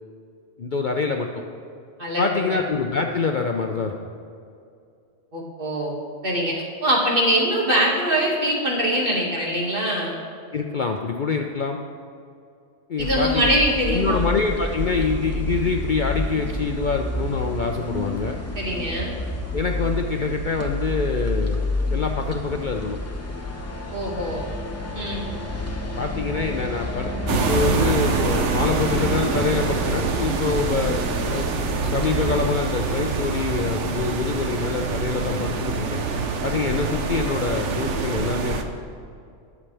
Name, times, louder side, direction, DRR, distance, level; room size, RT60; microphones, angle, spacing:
voice 1, 0.6-1.4 2.2-3.9 10.5-11.8 12.9-13.5 13.9-18.4 19.5-21.6 21.9-23.0 26.0-31.0 31.3-31.5 31.8-36.0 36.4-38.6, left 4 dB, 50° left, 3 dB, 0.6 m, -25 dB
voice 2, 2.0-2.6 5.3-5.9 6.2-10.1 13.0-14.2 18.5-19.2 23.9-24.4 24.9-25.2, equal, 45° right, -3 dB, 2.2 m, -23 dB
sound 1, 13.0-32.5, left 1 dB, 15° left, 0.9 m, -29 dB
sound 2, 27.3-38.6, right 4 dB, 70° right, 1.1 m, -25 dB
20.5 x 7.3 x 3.4 m, 2.5 s
omnidirectional pair, 1.3 m